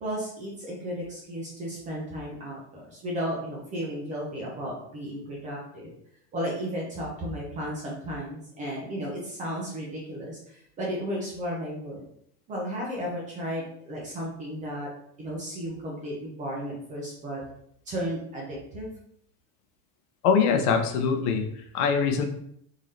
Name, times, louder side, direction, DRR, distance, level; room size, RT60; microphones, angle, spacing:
voice 1, 0.0-5.9 6.3-12.0 12.5-14.9 15.2-17.4 17.9-18.9, equal, 20° right, -3 dB, 0.4 m, -34 dB
voice 2, 20.2-22.3, left 6 dB, 75° left, 6 dB, 0.7 m, -23 dB
3.7 x 2.7 x 3.1 m, 0.68 s
cardioid pair, 165°, 45 cm